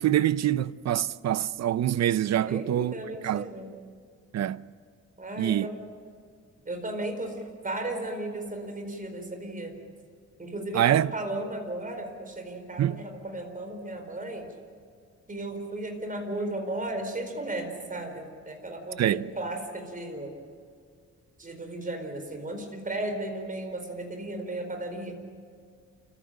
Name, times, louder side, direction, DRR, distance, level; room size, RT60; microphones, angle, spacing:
voice 1, 0.0-2.9 3.2-3.5 4.3-4.7 5.4-5.7 10.7-11.1 12.8-13.0 19.0-19.3, right 11 dB, 65° right, 0.6 m, -25 dB
voice 2, 2.5-3.7 5.2-5.8 6.7-9.8 10.4-14.5 15.3-20.3 21.4-25.2, right 1 dB, 30° right, 4.5 m, -35 dB
29.0 x 15.0 x 9.1 m
cardioid pair, 105°, 29 cm